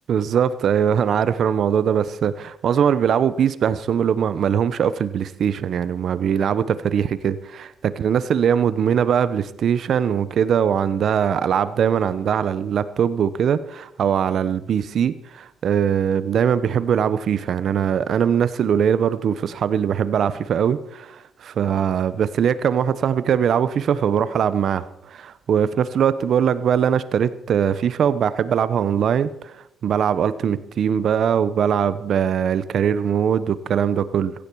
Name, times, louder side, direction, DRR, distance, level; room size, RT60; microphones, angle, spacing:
voice 1, 0.1-34.3, right 8 dB, 65° right, 15 dB, 0.9 m, -21 dB
16.0 x 15.5 x 4.7 m, 0.81 s
cardioid pair, 90°, 0 cm